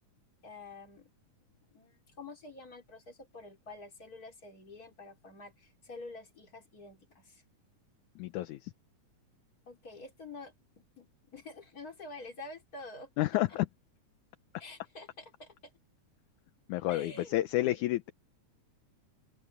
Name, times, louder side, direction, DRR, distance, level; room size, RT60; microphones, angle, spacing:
voice 1, 0.4-1.1 1.5-7.4 9.7-10.5 11.0-13.1 14.6-15.7 16.9-17.4, left 3 dB, 25° left, 3.8 m, -48 dB
voice 2, 8.2-8.7 13.2-13.7 16.7-18.1, left 15 dB, 75° left, 2.0 m, -30 dB
open air
omnidirectional pair, 3.8 m